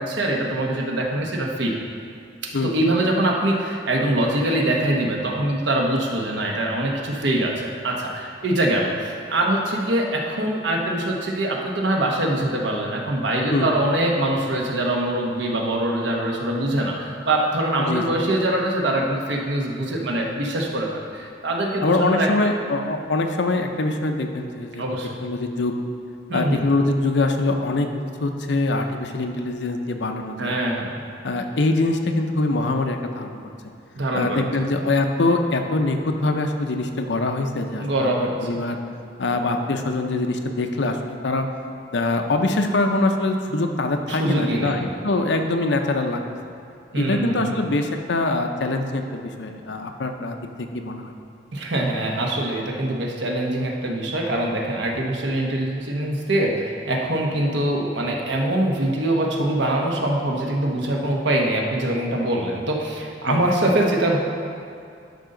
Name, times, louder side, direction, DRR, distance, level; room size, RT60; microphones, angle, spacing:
voice 1, 0.0-1.7 2.6-22.3 24.8-25.2 26.3-26.6 30.4-31.0 33.9-34.4 37.8-38.6 44.1-44.8 46.9-47.6 51.5-64.2, right 1 dB, 70° right, 0 dB, 1.1 m, -23 dB
voice 2, 17.8-18.2 21.8-24.8 25.2-25.8 26.3-27.9 28.2-30.5 31.2-33.4 34.1-38.8 39.2-41.5 41.9-46.2 47.0-51.1 63.2-63.4, left 2 dB, 70° left, 5 dB, 0.7 m, -23 dB
12.0 x 5.4 x 3.9 m, 2.4 s
head